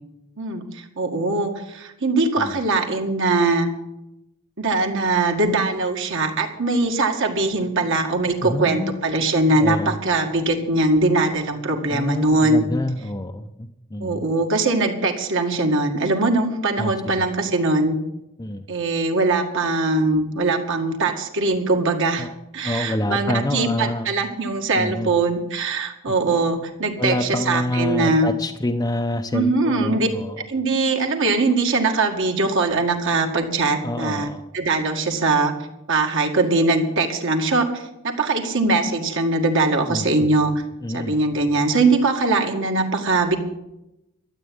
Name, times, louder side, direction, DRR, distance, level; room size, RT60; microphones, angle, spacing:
voice 1, 0.4-3.7 4.6-12.7 14.0-18.0 18.7-22.3 22.5-28.3 29.3-30.1 30.5-34.3 34.5-35.5 35.9-40.5 40.9-43.4, right 3 dB, 60° right, 3 dB, 2.0 m, -21 dB
voice 2, 8.4-9.0 9.6-9.9 11.9-14.2 16.8-17.3 18.4-18.7 22.2-22.3 22.6-24.1 24.7-25.1 27.0-30.4 33.8-34.4 39.9-40.1 40.8-41.1, left 1 dB, 15° left, 4 dB, 0.6 m, -27 dB
13.0 x 8.3 x 9.5 m, 0.88 s
head